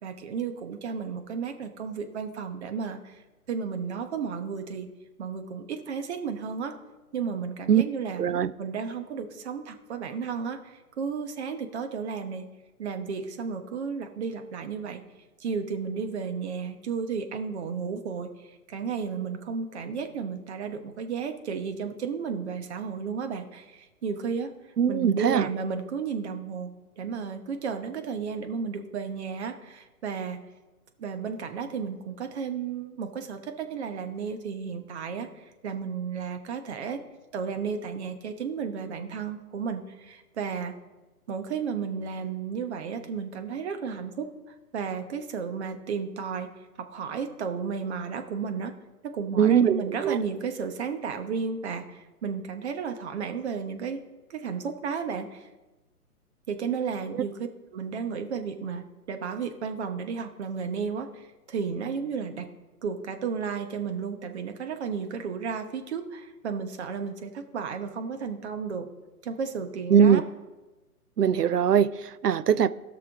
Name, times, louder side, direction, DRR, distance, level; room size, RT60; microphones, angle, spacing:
voice 1, 0.0-3.2 3.5-4.9 5.2-6.7 7.1-8.2 8.6-12.4 12.8-15.0 15.4-24.5 24.9-30.4 31.0-37.0 37.3-40.7 41.3-44.3 44.7-46.5 46.9-48.7 49.0-54.0 54.3-55.5 56.5-62.5 62.8-68.9 69.2-70.2, right 6 dB, 45° right, 1.1 m, -33 dB
voice 2, 8.2-8.5 24.8-25.5 49.4-50.2 69.9-70.2 71.2-72.7, right 8 dB, 80° right, 0.6 m, -21 dB
16.5 x 6.1 x 3.6 m
figure-of-eight pair, 130°, 46 cm